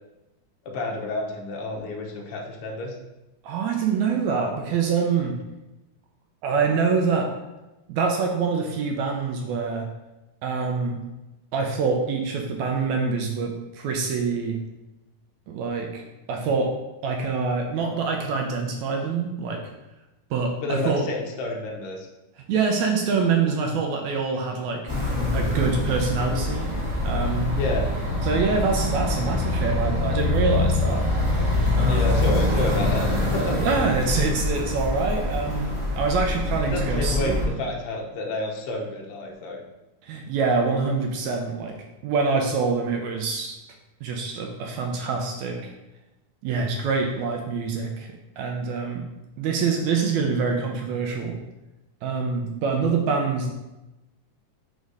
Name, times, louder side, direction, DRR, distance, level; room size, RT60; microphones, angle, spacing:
voice 1, 0.6-2.9 20.6-22.1 27.5-27.9 31.8-33.7 36.7-39.6, left 2 dB, 75° left, 0 dB, 1.3 m, -29 dB
voice 2, 3.4-5.3 6.4-7.3 7.9-9.9 10.4-11.0 11.5-14.6 15.5-16.0 16.3-16.7 17.0-19.6 20.3-21.1 22.5-24.8 25.3-26.7 27.0-27.5 28.2-31.0 31.8-32.2 33.6-35.7 36.0-37.4 40.0-41.7 42.0-43.6 44.0-45.7 46.4-49.0 49.4-51.4 52.0-53.5, right 5 dB, 75° right, 2 dB, 1.8 m, -25 dB
sound 1, 24.9-37.5, left 2 dB, 55° right, 0.3 m, -25 dB
5.3 x 4.0 x 4.7 m, 0.99 s
omnidirectional pair, 3.7 m